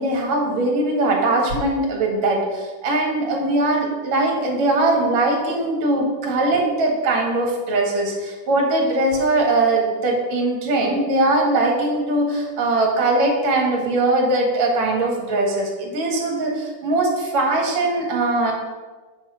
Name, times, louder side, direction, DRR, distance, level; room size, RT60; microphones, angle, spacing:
voice 1, 0.0-18.5, right 2 dB, 55° right, 0 dB, 2.7 m, -21 dB
9.1 x 4.3 x 6.2 m, 1.3 s
omnidirectional pair, 4.1 m